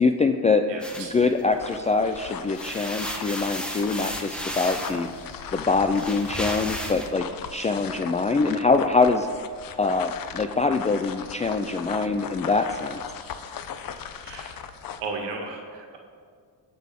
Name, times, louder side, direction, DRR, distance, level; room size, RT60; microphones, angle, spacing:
voice 1, 0.0-0.7 1.0-5.1 5.5-9.3 9.8-13.0, left 4 dB, 20° left, 7 dB, 0.4 m, -24 dB
voice 2, 0.7-1.2 14.2-14.6 15.0-16.0, right 4 dB, 80° right, 2 dB, 1.7 m, -35 dB
sound 1, 0.8-2.0 2.4-7.1, equal, ahead, 1.2 m, -34 dB
sound 2, 1.4-15.1, left 8 dB, 55° left, 0.8 m, -38 dB
18.0 x 6.1 x 3.7 m, 2.1 s
cardioid pair, 75°, 42 cm